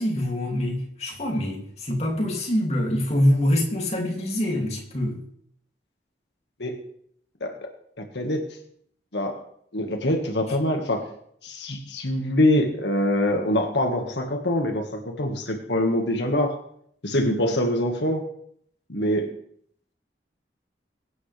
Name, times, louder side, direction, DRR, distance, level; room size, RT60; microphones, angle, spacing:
voice 1, 0.0-5.2, left 1 dB, 40° left, 2.8 m, -25 dB
voice 2, 8.0-8.4 9.1-9.4 9.7-11.1 11.4-16.6 17.0-18.2 18.9-19.3, left 1 dB, 85° left, 1.8 m, -24 dB
23.0 x 9.2 x 3.5 m
head